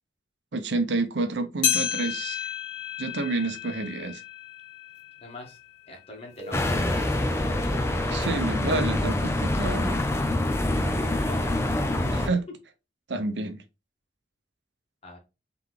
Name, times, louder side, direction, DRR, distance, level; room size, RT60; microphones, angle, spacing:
voice 1, 0.5-2.5 3.0-4.2 8.1-10.0 12.1-12.4 13.1-13.6, right 3 dB, 70° right, 0.7 m, -29 dB
sound 1, 1.6-6.3 6.8-6.9 7.7-7.8 8.7-8.8, left 9 dB, 85° left, 1.8 m, -32 dB
voice 2, 5.2-5.6 5.9-7.1 11.0-11.7 15.0-15.2, left 1 dB, 35° left, 1.7 m, -43 dB
sound 2, 6.3-8.4, left 1 dB, 40° right, 0.6 m, -39 dB
sound 3, 6.5-12.3, left 1 dB, 15° left, 0.6 m, -26 dB
4.0 x 3.4 x 3.2 m
head